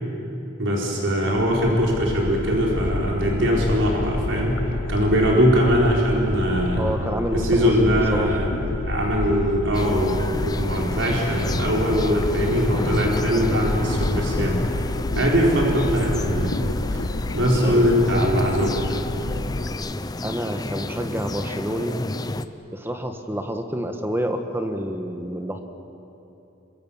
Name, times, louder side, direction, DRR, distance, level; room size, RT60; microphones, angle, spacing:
voice 1, 0.6-4.6 4.9-6.8 7.3-8.5 8.8-14.6 15.1-16.5 16.9-17.0 17.3-18.7, equal, 70° right, -2 dB, 4.5 m, -21 dB
sound 1, 1.3-19.7, left 2 dB, 85° left, 0.9 m, -29 dB
voice 2, 6.8-8.4 13.3-13.6 17.6-17.9 20.2-22.1 22.7-25.6, equal, 10° right, 6 dB, 1.3 m, -28 dB
sound 2, 9.7-22.4, left 2 dB, 20° left, 0.6 m, -31 dB
26.5 x 24.0 x 7.2 m, 2.9 s
head